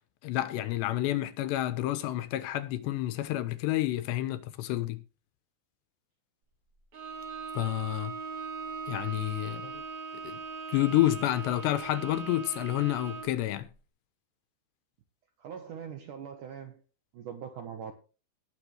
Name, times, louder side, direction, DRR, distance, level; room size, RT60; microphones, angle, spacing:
voice 1, 0.2-5.0 7.5-8.1 8.9-9.8 10.2-10.4 10.7-13.7, left 15 dB, 80° left, 2.9 m, -29 dB
Bowed string instrument, 6.9-13.4, right 5 dB, 45° right, 3.9 m, -40 dB
voice 2, 15.4-16.8 17.1-17.9, right 7 dB, 70° right, 2.0 m, -42 dB
19.5 x 7.1 x 3.3 m
omnidirectional pair, 5.3 m